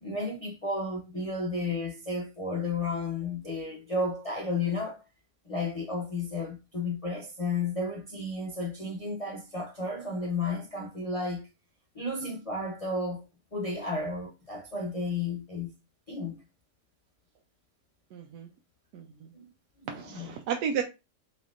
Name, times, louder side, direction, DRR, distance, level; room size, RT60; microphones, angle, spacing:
voice 1, 0.0-5.0 5.5-11.5 11.9-13.2 13.5-15.7 16.1-16.4 19.3-19.5 19.8-20.4, left 3 dB, 60° left, 0.3 m, -33 dB
voice 2, 18.1-18.5 18.9-19.3 19.9-20.8, right 7 dB, 85° right, 1.2 m, -33 dB
4.2 x 3.4 x 2.5 m
omnidirectional pair, 1.7 m